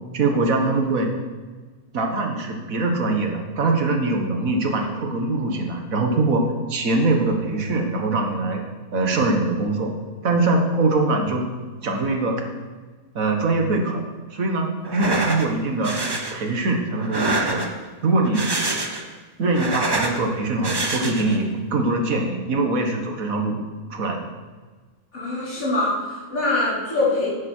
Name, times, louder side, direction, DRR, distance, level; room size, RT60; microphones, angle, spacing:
voice 1, 0.1-1.1 1.9-6.4 6.7-8.6 8.9-9.9 10.2-11.4 11.8-12.4 13.2-14.0 14.3-16.0 16.3-17.6 18.0-18.5 19.4-23.6 23.9-24.3, right 2 dB, 75° right, 3 dB, 1.9 m, -22 dB
sound 1, 14.8-15.5 15.8-16.3 17.0-17.9 18.2-19.1 19.4-20.2 20.6-21.4, right 2 dB, 20° right, 0.8 m, -26 dB
voice 2, 25.1-27.3, left 2 dB, 80° left, -9 dB, 4.8 m, -23 dB
11.0 x 9.6 x 4.5 m, 1.4 s
omnidirectional pair, 1.5 m